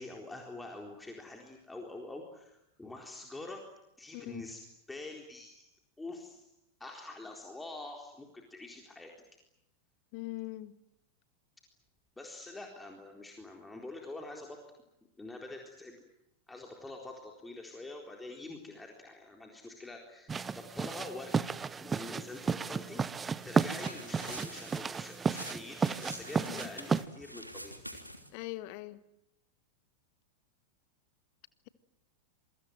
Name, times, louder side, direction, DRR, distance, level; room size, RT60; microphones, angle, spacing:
voice 1, 0.0-3.6 4.0-4.6 4.9-5.7 6.0-6.5 6.8-9.1 12.2-14.6 15.2-16.0 16.5-27.8, left 2 dB, 10° left, 1 dB, 4.0 m, -46 dB
voice 2, 4.1-4.4 10.1-10.7 26.4-26.6 28.3-29.0, left 18 dB, 45° left, 14 dB, 1.7 m, -41 dB
sound 1, 20.3-27.0, right 5 dB, 15° right, 1.0 m, -33 dB
sound 2, 23.4-28.4, equal, 90° right, 3.2 m, -47 dB
27.5 x 23.5 x 7.9 m, 0.85 s
figure-of-eight pair, 90°, 0 cm